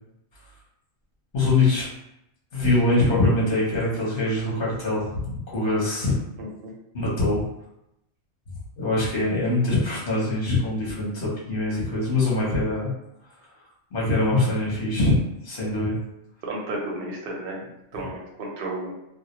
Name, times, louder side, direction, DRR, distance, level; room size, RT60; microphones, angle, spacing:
voice 1, 1.3-1.8 2.5-6.2 6.9-7.4 8.8-12.9 13.9-15.2 15.4-16.0, left 2 dB, 50° left, -6 dB, 0.9 m, -23 dB
voice 2, 6.4-6.7 16.5-18.9, right 2 dB, 55° right, -2 dB, 0.7 m, -33 dB
2.3 x 2.0 x 2.8 m, 0.84 s
omnidirectional pair, 1.4 m